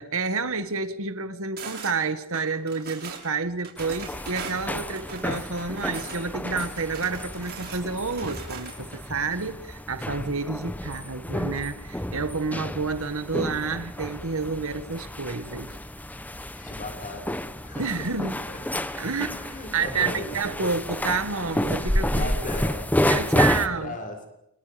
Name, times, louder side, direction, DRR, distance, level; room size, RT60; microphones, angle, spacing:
voice 1, 0.0-15.7 17.8-18.3 19.0-19.4 19.7-22.5 23.1-24.0, right 4 dB, 65° right, 1.9 m, -29 dB
sound 1, 1.6-2.0 2.3-3.3 3.6-6.2 6.5-9.0, right 6 dB, 50° right, 7.2 m, -40 dB
sound 2, 3.8-23.7, left 1 dB, 10° left, 1.2 m, -30 dB
voice 2, 16.6-18.6 19.3-20.7 22.1-23.0 23.6-24.2, left 2 dB, 40° left, 6.5 m, -38 dB
29.5 x 29.5 x 5.3 m
head